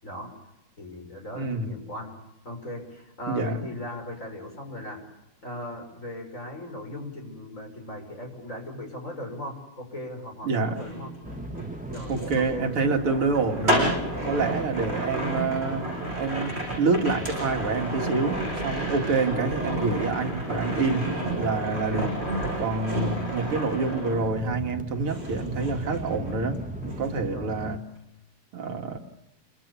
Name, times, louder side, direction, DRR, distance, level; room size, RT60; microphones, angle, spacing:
voice 1, 0.0-0.3 0.8-2.2 2.4-5.0 5.4-11.1 11.9-12.7 19.2-19.5 21.0-21.3 21.7-22.1 27.3-27.6, left 1 dB, 35° left, 3 dB, 6.7 m, -38 dB
voice 2, 1.3-1.7 3.3-3.7 10.4-10.8 12.1-13.9 14.2-15.9 16.2-22.1 22.6-27.8 28.5-29.0, right 4 dB, 80° right, 4 dB, 3.1 m, -27 dB
sound 1, 10.6-24.8 25.1-26.6 26.8-27.2, right 1 dB, 25° right, 7.6 m, -31 dB
sound 2, 11.2-27.8, right 1 dB, 5° right, 0.9 m, -39 dB
28.5 x 26.0 x 7.0 m, 0.88 s
omnidirectional pair, 2.4 m